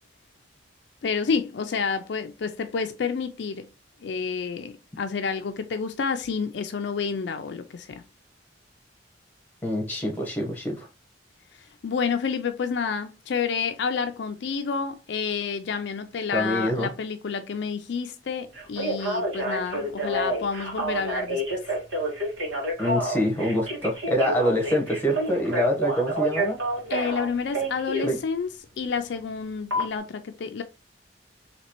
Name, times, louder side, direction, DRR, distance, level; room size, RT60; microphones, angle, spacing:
voice 1, 1.0-3.7 4.0-8.0 11.6-21.6 26.9-28.5 28.8-30.6, left 5 dB, 65° left, 0.4 m, -29 dB
voice 2, 9.6-10.9 16.3-16.9 22.8-26.6 28.0-28.2, equal, 10° left, 1.0 m, -25 dB
Telephone, 18.5-28.1 29.7-29.8, right 1 dB, 85° right, 1.5 m, -28 dB
4.1 x 2.9 x 2.9 m
head